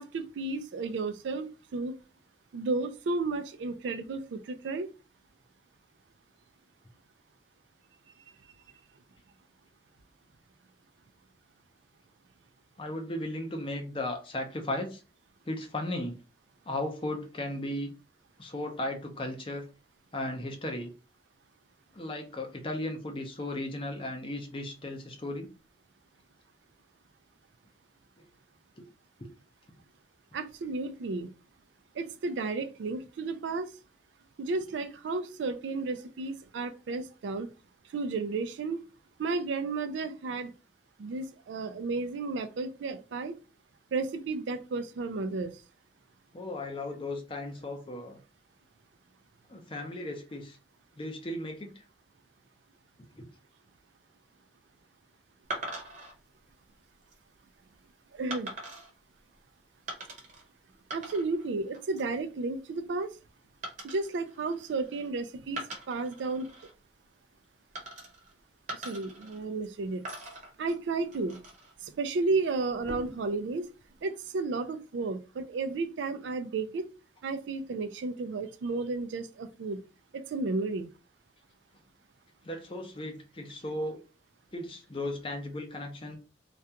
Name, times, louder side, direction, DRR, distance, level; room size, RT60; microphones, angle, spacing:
voice 1, 0.0-1.5 1.7-2.0 2.5-4.9 30.3-31.3 31.9-33.7 34.4-37.5 37.9-38.8 39.2-40.5 41.0-43.3 43.9-45.5 58.1-58.5 60.9-63.1 63.8-65.6 65.9-66.5 68.7-70.0 70.6-71.4 71.8-73.7 74.0-76.9 77.2-79.8 80.1-80.9, right 3 dB, 90° right, 0.4 m, -33 dB
voice 2, 12.8-15.0 15.5-16.1 16.7-17.9 18.4-19.7 20.1-20.9 21.9-25.5 28.2-28.3 28.8-28.9 46.3-48.2 49.5-50.6 51.0-51.7 53.1-53.3 82.5-84.0 84.5-86.2, left 1 dB, 30° left, 0.5 m, -36 dB
sound 1, 55.5-56.1 56.8-57.2 58.3-58.9 59.9-60.4 60.7-61.5 61.7-62.2 63.6-65.1 65.5-66.7 67.7-68.3 68.7-69.7 70.0-71.7 72.7-73.3, right 1 dB, 45° right, 0.8 m, -42 dB
2.4 x 2.2 x 2.7 m
head